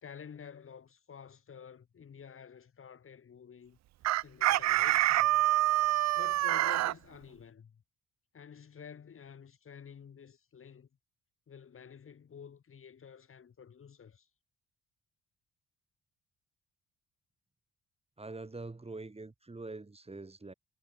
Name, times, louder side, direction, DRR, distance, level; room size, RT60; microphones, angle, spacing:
voice 1, 0.0-3.8 4.2-5.4 6.2-7.8 8.3-10.9 11.5-14.3, left 7 dB, 45° left, 2.7 m, -50 dB
Chicken rooster, 4.0-6.9, right 15 dB, 65° right, 0.5 m, -26 dB
voice 2, 18.2-20.5, right 3 dB, 20° right, 7.9 m, -44 dB
cardioid pair, 90°, 30 cm